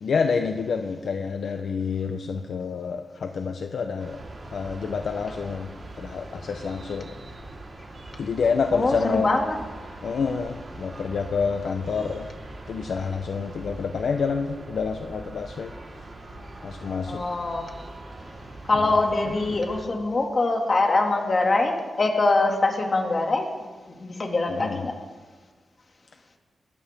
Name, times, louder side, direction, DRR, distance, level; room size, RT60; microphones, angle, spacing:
voice 1, 0.0-4.2 4.4-5.7 6.0-7.2 8.2-9.3 10.0-12.3 12.7-15.7 16.6-17.2 19.5-19.6 24.5-24.8, left 5 dB, 80° left, 5 dB, 0.9 m, -28 dB
sound 1, 4.0-19.9, right 2 dB, 50° right, 4.1 m, -42 dB
voice 2, 8.7-9.6 17.1-17.7 18.6-23.5 23.9-25.0, left 2 dB, 40° left, 2 dB, 2.5 m, -23 dB
21.0 x 15.5 x 3.7 m, 1.4 s
wide cardioid pair, 110°, 0 cm